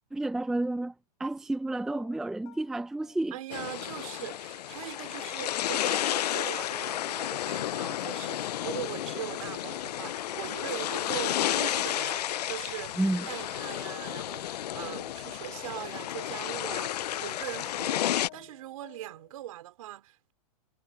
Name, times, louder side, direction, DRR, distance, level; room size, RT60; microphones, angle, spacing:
voice 1, 0.1-3.4 13.0-13.3, right 2 dB, ahead, 0.6 m, -30 dB
sound 1, 1.9-4.8 5.2-13.5 13.9-19.3, left 21 dB, 45° left, 4.1 m, -56 dB
voice 2, 3.3-13.0 13.3-20.3, right 14 dB, 60° right, 3.8 m, -41 dB
sound 2, 3.5-18.3, left 12 dB, 85° left, 0.5 m, -32 dB
supercardioid pair, 160°, 20 cm